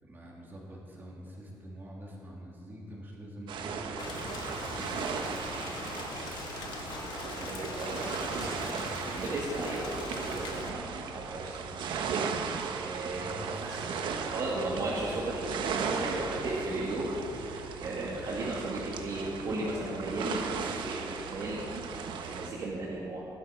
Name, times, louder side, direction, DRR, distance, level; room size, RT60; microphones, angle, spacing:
voice 1, 0.0-6.3 7.3-8.8 13.1-14.4, equal, 25° right, -4 dB, 3.1 m, -47 dB
sound 1, 3.5-22.5, right 6 dB, 85° right, 1.2 m, -37 dB
Rain, 4.0-10.7, left 4 dB, 70° left, 1.6 m, -41 dB
voice 2, 7.4-8.1 8.4-8.5 9.1-21.6 22.2-23.3, right 2 dB, 50° right, -5 dB, 2.2 m, -36 dB
17.0 x 12.0 x 5.1 m, 2.9 s
wide cardioid pair, 170°, 8 cm